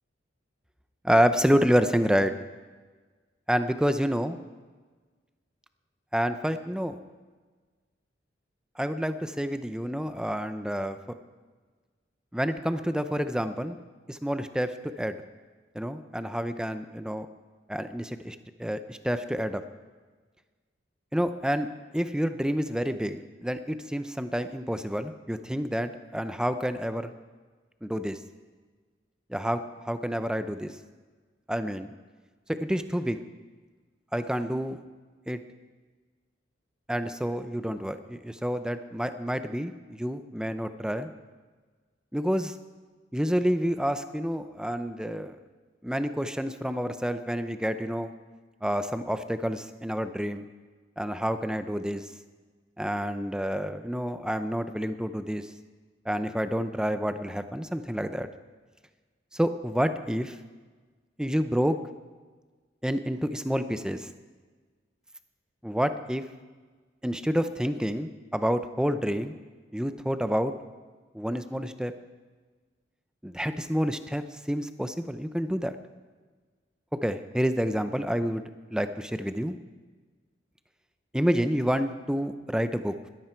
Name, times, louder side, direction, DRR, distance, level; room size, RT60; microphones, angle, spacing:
voice 1, 1.0-2.3 3.5-4.4 6.1-7.0 8.8-11.0 12.3-13.8 14.1-15.2 15.7-17.3 17.7-19.6 21.1-21.7 21.9-27.1 27.8-28.2 29.3-30.7 31.5-31.9 32.6-33.2 34.1-34.8 35.3-35.4 36.9-41.1 42.1-42.5 43.1-45.3 45.8-48.1 48.6-50.4 51.0-52.0 52.8-55.5 56.1-58.3 59.3-60.4 61.2-61.8 62.8-64.1 65.6-66.2 67.0-69.3 69.7-70.5 71.1-71.9 73.2-75.8 77.0-78.4 78.7-79.5 81.1-82.9, equal, 5° right, 10 dB, 0.6 m, -28 dB
20.0 x 13.5 x 4.5 m, 1.4 s
head